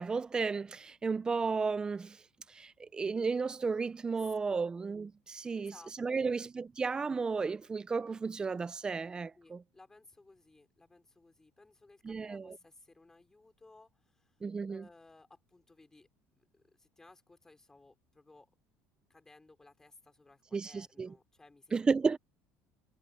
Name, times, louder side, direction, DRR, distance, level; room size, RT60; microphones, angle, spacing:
voice 1, 0.0-2.2 2.5-9.6 12.0-12.5 14.4-14.9 20.5-21.1 21.7-22.2, right 4 dB, 15° right, 0.6 m, -33 dB
voice 2, 4.1-4.7 5.6-6.3 9.3-14.4 14.7-16.1 16.3-18.5 19.1-22.2, left 2 dB, 10° left, 5.0 m, -59 dB
cardioid pair, 150°, 5 cm